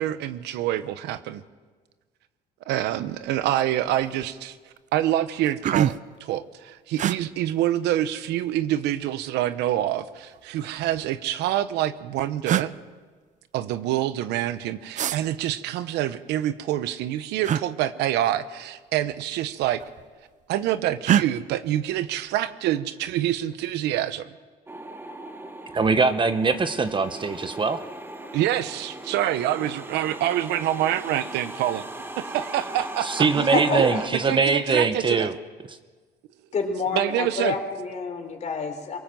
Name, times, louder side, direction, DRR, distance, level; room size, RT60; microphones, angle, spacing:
voice 1, 0.0-1.4 2.7-4.6 4.9-12.8 13.5-19.8 20.5-24.3 28.3-31.8 32.2-35.3 36.9-37.5, right 12 dB, 85° right, 14 dB, 1.0 m, -26 dB
sound 1, 3.2-3.5 3.9-4.3 4.9-5.0 5.3-6.2 7.0-7.2 8.4-9.1 10.2-11.1 12.0-12.1 12.4-12.7 14.9-15.2 17.4-17.6 19.0-19.2 19.5-20.1 21.0-21.3, right 10 dB, 45° right, 0.6 m, -25 dB
sound 2, 24.7-34.1, right 2 dB, 15° right, 1.6 m, -38 dB
voice 2, 25.7-27.8 33.0-35.3, right 4 dB, 30° right, 11 dB, 1.0 m, -22 dB
voice 3, 36.5-39.0, left 5 dB, 45° left, 5 dB, 3.8 m, -28 dB
23.0 x 18.5 x 7.6 m, 1.4 s
cardioid pair, 110°, 17 cm